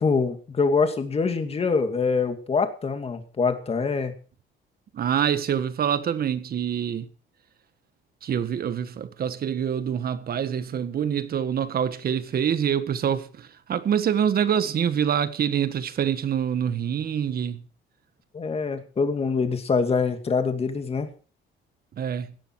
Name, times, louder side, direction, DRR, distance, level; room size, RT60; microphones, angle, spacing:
voice 1, 0.0-4.1 18.3-21.1, left 4 dB, 30° left, 2.5 m, -24 dB
voice 2, 4.9-7.1 8.2-17.6 22.0-22.3, right 8 dB, 45° right, 1.6 m, -26 dB
17.5 x 12.0 x 4.8 m
cardioid pair, 145°, 21 cm